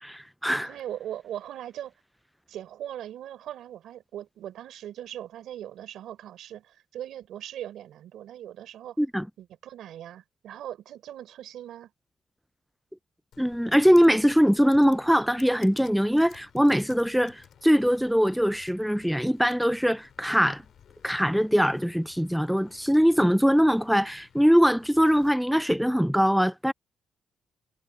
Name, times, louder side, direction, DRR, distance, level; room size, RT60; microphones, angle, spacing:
voice 1, 0.0-0.7 9.0-9.3 13.4-20.6 21.0-26.7, equal, ahead, 0.3 m, -22 dB
voice 2, 0.6-1.9 2.5-9.0 9.4-11.9, right 11 dB, 75° right, 3.9 m, -40 dB
Computer keyboard, 13.3-25.3, left 9 dB, 65° left, 5.0 m, -56 dB
cardioid pair, 90°, 0 cm